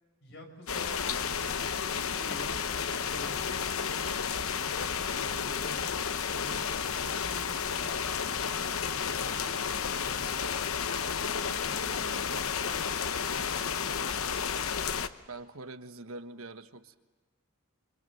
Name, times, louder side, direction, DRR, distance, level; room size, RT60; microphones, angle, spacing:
voice 1, 0.2-1.7 2.0-4.0 4.7-5.8 6.3-10.9 11.3-14.2, left 1 dB, 50° left, 4 dB, 6.3 m, -49 dB
sound 1, 0.7-15.1, left 6 dB, 70° left, 0.9 m, -32 dB
voice 2, 15.3-17.0, right 2 dB, 70° right, 9 dB, 1.3 m, -44 dB
28.5 x 25.0 x 7.8 m, 1.4 s
head